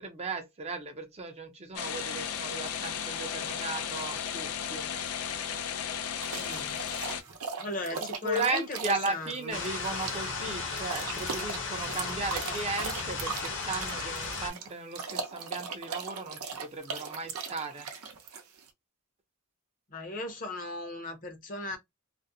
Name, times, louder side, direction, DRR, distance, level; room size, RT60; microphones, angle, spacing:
voice 1, 0.0-4.9 7.3-7.4 7.9-17.9, right 3 dB, 30° right, 0.5 m, -36 dB
sound 1, 1.8-7.2, left 8 dB, 85° left, 0.5 m, -35 dB
sound 2, 6.2-18.7, right 5 dB, 90° right, 0.6 m, -39 dB
voice 2, 6.3-6.8 7.6-9.6 19.9-21.8, left 1 dB, 40° left, 0.7 m, -37 dB
sound 3, 9.5-14.5, left 4 dB, 60° left, 0.9 m, -35 dB
2.4 x 2.0 x 2.6 m
head